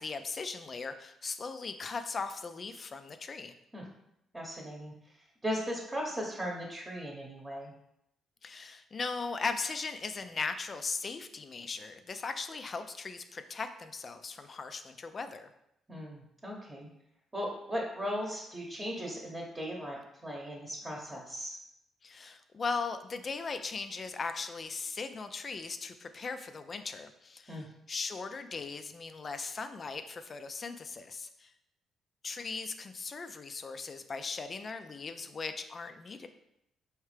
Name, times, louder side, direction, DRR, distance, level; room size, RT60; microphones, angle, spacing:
voice 1, 0.0-3.5 8.4-15.5 22.0-31.5 32.2-36.3, left 4 dB, 40° left, 9 dB, 0.4 m, -38 dB
voice 2, 4.3-7.7 15.9-16.9 17.3-21.6 27.5-27.7, equal, 20° right, -2 dB, 0.9 m, -38 dB
4.6 x 3.2 x 3.3 m, 0.80 s
cardioid pair, 90°, 0 cm